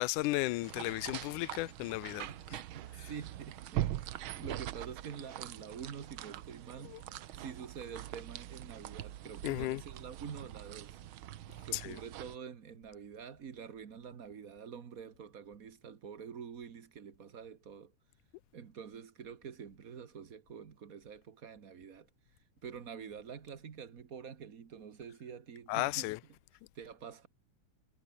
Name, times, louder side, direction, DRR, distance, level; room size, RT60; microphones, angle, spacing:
voice 1, 0.0-2.6 6.9-7.0 9.4-9.8 11.7-12.0 25.7-26.2, left 20 dB, 85° left, 2.2 m, -34 dB
sound 1, 0.6-12.4, right 13 dB, 80° right, 1.1 m, -43 dB
voice 2, 2.3-7.0 7.3-11.0 11.6-17.9 18.5-22.1 22.6-26.1 26.7-27.3, right 7 dB, 45° right, 1.1 m, -47 dB
omnidirectional pair, 3.5 m